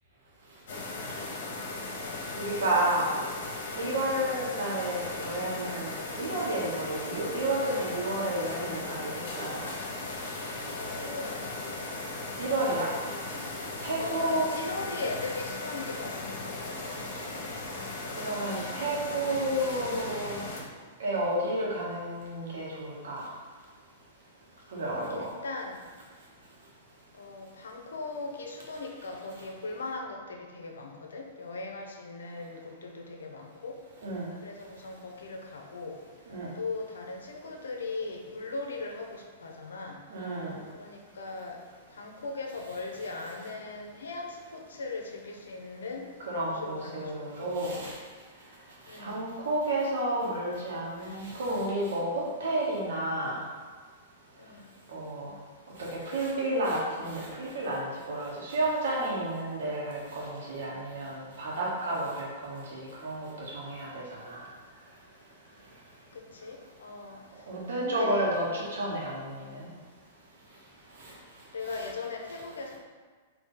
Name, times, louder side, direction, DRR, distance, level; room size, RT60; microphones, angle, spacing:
sound 1, 0.7-20.6, left 2 dB, 65° left, 1.0 m, -37 dB
voice 1, 2.4-3.1 3.7-9.7 12.4-12.9 13.8-14.5 18.2-20.4 21.0-23.3 24.7-25.3 34.0-34.3 36.3-36.5 40.1-40.6 46.3-48.0 49.0-53.4 54.9-55.3 55.8-64.4 67.5-69.7 71.0-71.1 71.7-71.8, right 1 dB, 75° right, -3 dB, 1.2 m, -31 dB
voice 2, 10.7-11.5 14.0-17.1 25.1-25.8 27.1-33.8 34.4-36.0 36.6-40.0 40.7-41.6 41.9-46.0 46.5-47.8 48.9-49.2 54.4-54.6 66.1-67.2 67.8-68.3 71.5-72.8, left 3 dB, 85° left, 2 dB, 0.7 m, -39 dB
4.0 x 2.7 x 3.8 m, 1.5 s
hypercardioid pair, 120°, 0 cm